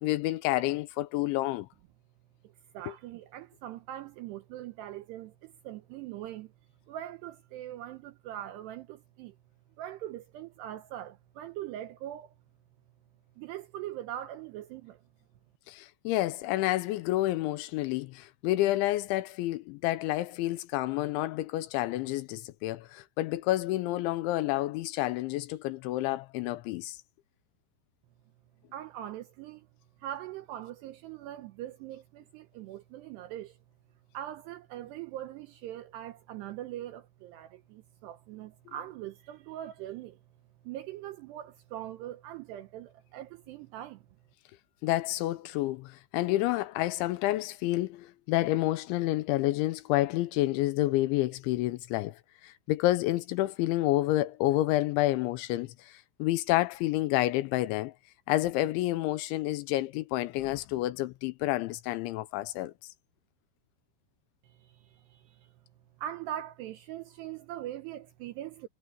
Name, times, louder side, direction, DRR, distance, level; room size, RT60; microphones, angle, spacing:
voice 1, 0.0-1.7 15.7-27.0 44.8-57.9 58.3-62.7, left 16 dB, 80° left, 2.9 m, -29 dB
voice 2, 2.7-6.5 6.9-9.4 9.8-12.3 13.4-15.0 28.7-29.7 30.0-33.6 34.1-40.2 40.6-44.0 64.4-65.5 66.0-68.7, right 12 dB, 80° right, 2.5 m, -41 dB
omnidirectional pair, 5.7 m